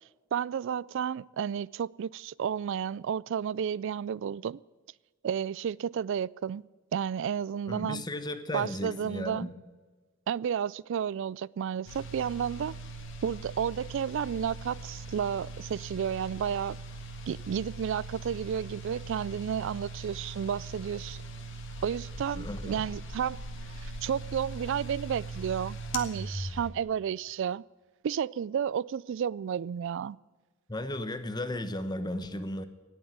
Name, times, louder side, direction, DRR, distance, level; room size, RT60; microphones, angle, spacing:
voice 1, 0.3-4.6 5.2-6.6 6.9-8.0 8.5-9.5 10.3-12.8 13.2-16.8 17.3-21.2 21.8-23.4 23.7-27.6 28.0-30.2, right 8 dB, 65° right, 0.3 m, -32 dB
voice 2, 7.7-9.5 22.4-22.9 30.7-32.7, left 1 dB, 20° left, 1.0 m, -35 dB
sound 1, 11.9-26.7, right 1 dB, 65° left, 1.7 m, -40 dB
18.0 x 7.1 x 8.1 m
head